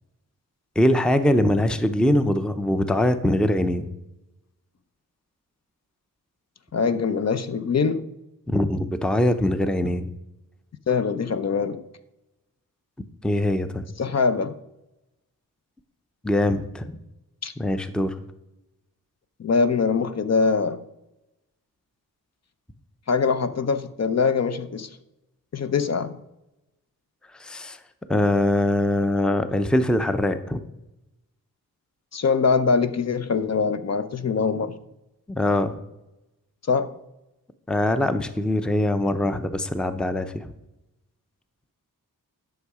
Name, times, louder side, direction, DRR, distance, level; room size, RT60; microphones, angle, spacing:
voice 1, 0.8-3.9 8.5-10.1 13.2-13.8 16.2-17.0 17.6-18.2 27.4-27.8 28.1-30.6 35.3-35.7 37.7-40.5, left 1 dB, ahead, 0.6 m, -22 dB
voice 2, 6.7-8.1 10.9-11.8 14.0-14.5 17.4-17.5 19.4-20.8 23.1-24.9 25.5-26.2 32.1-34.7 36.7-36.9, left 5 dB, 45° left, 0.7 m, -23 dB
11.0 x 6.3 x 4.8 m
wide cardioid pair, 105°, 35 cm